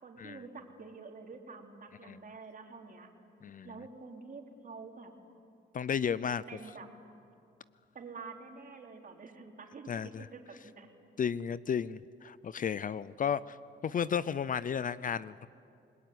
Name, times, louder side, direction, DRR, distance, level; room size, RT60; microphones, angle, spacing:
voice 1, 0.0-3.1 3.6-5.1 6.5-6.9 7.9-10.9, right 4 dB, 45° right, 2 dB, 3.8 m, -48 dB
voice 2, 5.7-6.4 9.9-10.3 11.2-13.6 13.8-15.5, left 7 dB, 45° left, 18 dB, 0.6 m, -33 dB
28.5 x 20.5 x 9.5 m, 2.6 s
cardioid pair, 90°, 20 cm